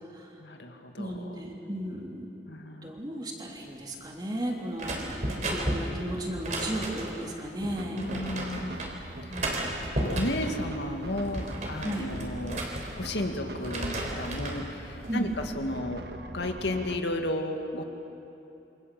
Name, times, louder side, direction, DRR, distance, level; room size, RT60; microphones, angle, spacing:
voice 1, 0.4-1.4 2.5-2.9 5.4-5.5 7.9-8.8 9.2-9.3 9.9-12.6 13.0-16.0 16.3-17.8, left 1 dB, 75° left, 4 dB, 2.1 m, -33 dB
voice 2, 1.0-2.3 2.8-8.1 9.3-9.9 11.8-12.1 15.1-15.3, right 1 dB, 25° right, 0 dB, 3.2 m, -35 dB
sound 1, 4.8-7.3 8.0-8.9 9.3-10.6 11.0-13.3 13.6-14.6 15.1-15.5, right 1 dB, 40° right, 3.8 m, -33 dB
sound 2, 7.6-17.0, right 1 dB, 65° right, 1.6 m, -42 dB
28.0 x 25.5 x 7.7 m, 2.9 s
head